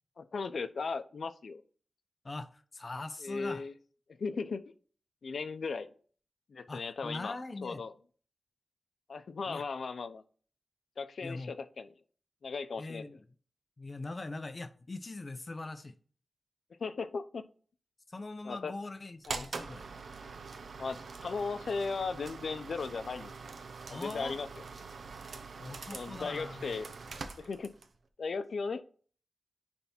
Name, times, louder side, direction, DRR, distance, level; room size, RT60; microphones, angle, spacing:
voice 1, 0.2-1.6 3.2-3.7 4.2-4.6 5.2-5.9 6.5-7.3 7.6-7.9 9.1-10.2 11.0-11.9 12.4-13.0 16.8-17.4 18.4-18.7 19.3-19.5 20.8-23.3 23.9-24.5 25.9-26.9 27.4-27.7 28.2-28.8, left 4 dB, 85° left, 11 dB, 0.6 m, -36 dB
voice 2, 2.2-3.6 6.7-7.8 9.5-9.6 11.2-11.5 12.8-13.2 13.8-15.9 18.1-19.9 23.9-24.4 25.6-26.8, left 2 dB, 40° left, 9 dB, 0.6 m, -42 dB
sound 1, 19.2-28.0, right 4 dB, 85° right, 0.8 m, -44 dB
9.6 x 3.5 x 4.3 m, 0.42 s
wide cardioid pair, 115°, 0 cm